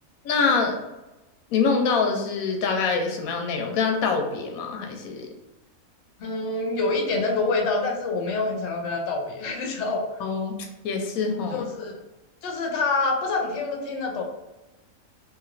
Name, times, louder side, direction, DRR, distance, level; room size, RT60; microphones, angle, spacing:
voice 1, 0.2-0.8 1.5-5.3 10.2-10.6 10.8-11.7, left 5 dB, 90° left, 3 dB, 1.0 m, -25 dB
voice 2, 6.2-10.2 11.5-12.0 12.4-14.2, left 3 dB, 65° left, 2 dB, 0.9 m, -26 dB
2.9 x 2.8 x 2.5 m, 1.0 s
omnidirectional pair, 1.4 m